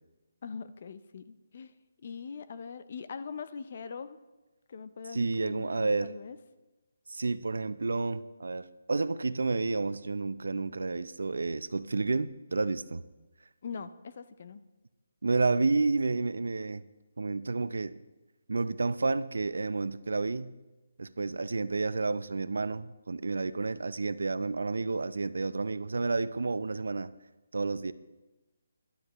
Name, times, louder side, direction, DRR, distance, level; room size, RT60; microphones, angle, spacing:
voice 1, 0.4-1.7 2.0-4.2 4.7-6.4 13.6-14.6, left 5 dB, 30° left, 12 dB, 0.4 m, -42 dB
voice 2, 5.1-6.1 7.1-13.0 15.2-16.8 17.2-18.0 18.5-20.5 21.0-27.1 27.5-27.9, right 3 dB, 75° right, 15 dB, 0.5 m, -30 dB
17.5 x 11.5 x 3.0 m, 1.1 s
hypercardioid pair, 180°, 0 cm